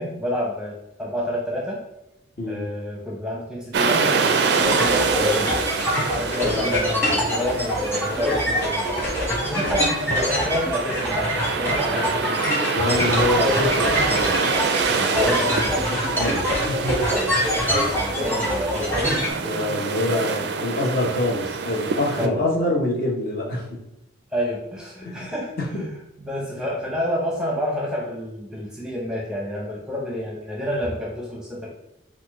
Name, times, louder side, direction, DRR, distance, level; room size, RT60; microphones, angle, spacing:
voice 1, 0.0-1.8 2.5-5.7 6.1-8.9 9.4-12.5 15.1-15.9 17.1-17.4 17.9-19.8 20.1-20.4 22.2-22.5 24.3-31.7, equal, 5° right, -3 dB, 0.7 m, -29 dB
sound 1, 3.7-22.3, right 5 dB, 55° right, 0.4 m, -26 dB
sound 2, 4.6-19.3, equal, 10° left, 1.1 m, -24 dB
voice 2, 6.4-6.7 12.7-14.6 14.9-15.4 15.9-16.9 19.4-23.7 25.0-25.3, left 1 dB, 50° left, -2 dB, 1.0 m, -25 dB
4.2 x 2.4 x 4.7 m, 0.85 s
head